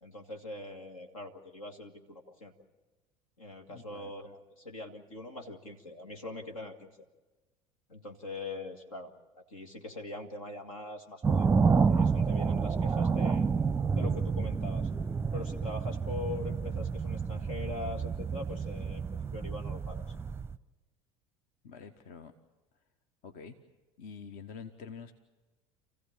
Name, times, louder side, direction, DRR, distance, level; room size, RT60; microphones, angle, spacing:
voice 1, 0.0-2.5 3.4-6.9 7.9-11.5 11.9-13.5 13.9-14.9 15.3-19.1 19.3-20.1, left 2 dB, 80° left, 5 dB, 1.9 m, -42 dB
voice 2, 3.7-4.1 21.6-22.3 23.2-23.6 24.0-25.1, left 6 dB, 55° left, 8 dB, 1.1 m, -46 dB
sound 1, 11.2-20.6, right 5 dB, 15° right, 0.6 m, -29 dB
28.0 x 15.5 x 7.2 m, 1.2 s
figure-of-eight pair, 65°, 17 cm